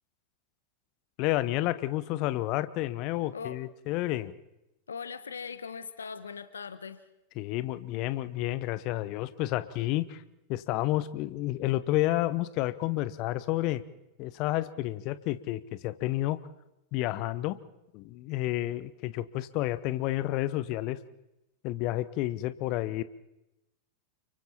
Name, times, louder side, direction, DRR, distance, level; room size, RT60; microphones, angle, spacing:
voice 1, 1.2-4.3 7.4-10.2 10.5-13.8 14.2-16.4 16.9-17.6 17.9-21.0 21.6-23.0, left 16 dB, 40° left, 16 dB, 1.0 m, -30 dB
voice 2, 4.9-7.1, left 6 dB, 70° left, 14 dB, 1.1 m, -40 dB
29.5 x 24.0 x 4.4 m, 0.92 s
figure-of-eight pair, 90°, 0 cm